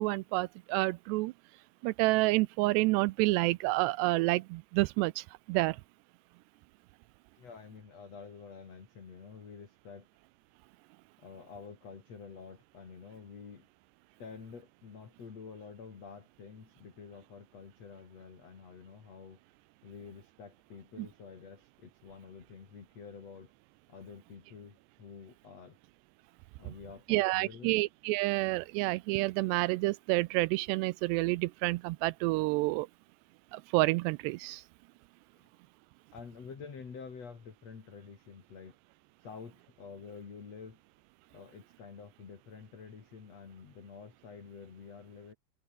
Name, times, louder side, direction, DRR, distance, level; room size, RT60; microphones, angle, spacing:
voice 1, 0.0-1.3 1.8-5.8 27.1-32.9 33.5-34.6, right 21 dB, 85° right, 2.6 m, -29 dB
voice 2, 7.4-10.1 11.2-13.7 14.2-19.4 19.8-23.5 23.9-25.8 26.6-27.8 35.3-35.5 36.1-38.8 39.2-40.8 41.3-45.3, left 5 dB, 40° left, 3.6 m, -49 dB
omnidirectional pair, 4.9 m